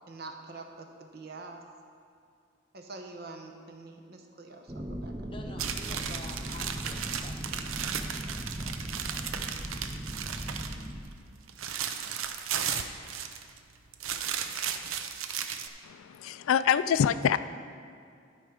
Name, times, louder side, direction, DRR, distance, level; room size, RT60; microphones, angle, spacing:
voice 1, 0.1-1.6 2.7-5.5, right 3 dB, 50° right, 4 dB, 0.8 m, -45 dB
sound 1, 4.7-11.0, right 1 dB, 15° right, 0.6 m, -38 dB
voice 2, 5.3-9.5, left 2 dB, 25° left, 2 dB, 0.8 m, -50 dB
sound 2, 5.6-10.9 11.2-13.6 13.9-15.7, right 8 dB, 90° right, 0.5 m, -35 dB
voice 3, 15.8-17.4, left 8 dB, 90° left, 13 dB, 0.3 m, -25 dB
12.5 x 4.6 x 5.0 m, 2.4 s
head